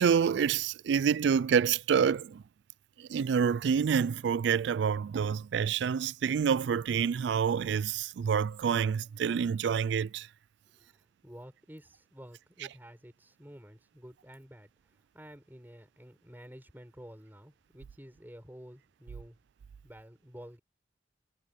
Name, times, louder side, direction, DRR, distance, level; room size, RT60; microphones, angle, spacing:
voice 1, 0.0-2.4 3.0-10.3, right 7 dB, 75° right, 0.3 m, -27 dB
voice 2, 10.8-19.4 19.8-20.6, equal, 10° right, 5.8 m, -51 dB
head